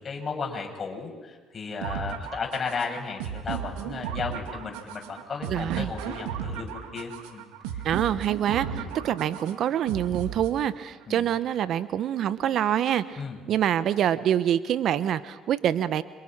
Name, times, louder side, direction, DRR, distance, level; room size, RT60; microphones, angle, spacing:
voice 1, 0.0-7.4 7.7-7.8 8.7-8.9 11.1-11.3 13.2-13.4, left 5 dB, 40° left, 2 dB, 7.0 m, -34 dB
sound 1, 1.8-10.8, right 8 dB, 85° right, 2.4 m, -35 dB
voice 2, 5.5-5.9 7.8-13.2 13.5-16.0, right 10 dB, 65° right, 14 dB, 1.1 m, -26 dB
30.0 x 26.0 x 6.2 m, 1.4 s
hypercardioid pair, 60°, 0 cm